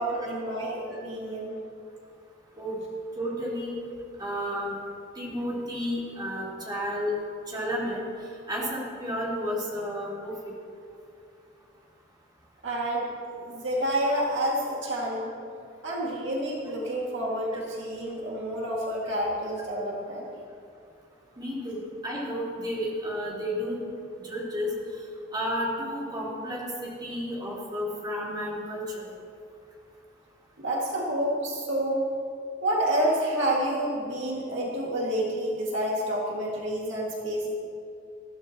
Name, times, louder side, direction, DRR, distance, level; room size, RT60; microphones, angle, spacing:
voice 1, 0.0-1.5 12.6-13.1 13.4-15.3 15.8-20.3 30.6-32.0 32.6-37.5, right 1 dB, 65° right, -4 dB, 2.4 m, -29 dB
voice 2, 3.2-3.7 4.2-4.7 5.2-7.1 7.5-8.0 8.5-10.3 17.5-17.6 21.4-21.8 22.0-23.8 24.2-24.7 25.3-29.1, equal, 20° right, -7 dB, 4.3 m, -32 dB
22.0 x 15.5 x 3.1 m, 2.4 s
head